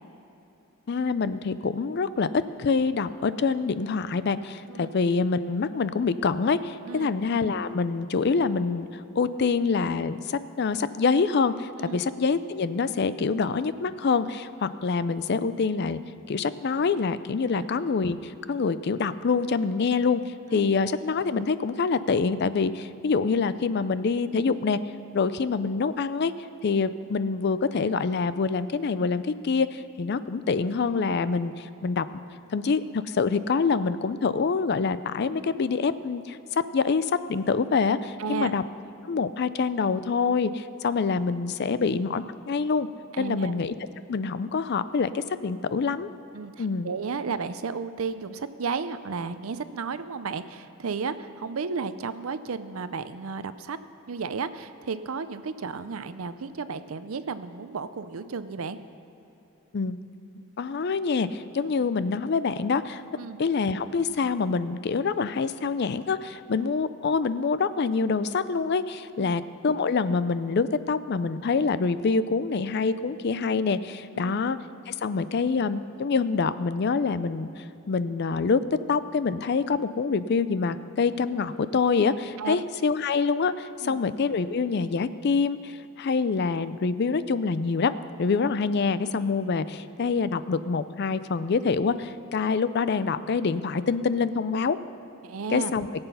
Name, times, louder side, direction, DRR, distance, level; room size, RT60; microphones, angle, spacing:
voice 1, 0.9-16.0 16.3-24.8 25.1-26.3 26.6-32.2 32.5-38.6 39.0-42.9 43.2-43.7 44.1-46.1 46.6-46.9 59.7-60.0 60.6-63.0 63.4-74.6 74.9-78.6 78.9-87.9 88.2-94.8 95.5-95.9, left 4 dB, 50° left, 14 dB, 0.4 m, -26 dB
voice 2, 38.2-38.5 43.1-43.5 46.3-53.8 54.1-58.8 63.1-63.4 66.6-66.7 69.2-69.3 74.1-74.4 82.4-82.6 83.8-84.0 95.2-95.7, right 5 dB, 80° right, 12 dB, 0.6 m, -33 dB
18.5 x 8.0 x 5.6 m, 2.9 s
head